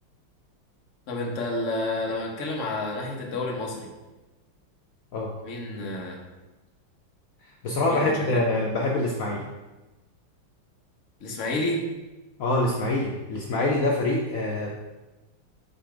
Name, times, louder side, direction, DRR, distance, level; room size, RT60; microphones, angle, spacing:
voice 1, 1.1-3.9 5.4-6.2 7.9-8.4 11.2-11.8, left 2 dB, 45° left, 0 dB, 1.1 m, -30 dB
voice 2, 7.6-9.4 12.4-14.7, left 2 dB, 85° left, -2 dB, 0.7 m, -25 dB
6.8 x 3.4 x 5.0 m, 1.1 s
omnidirectional pair, 2.4 m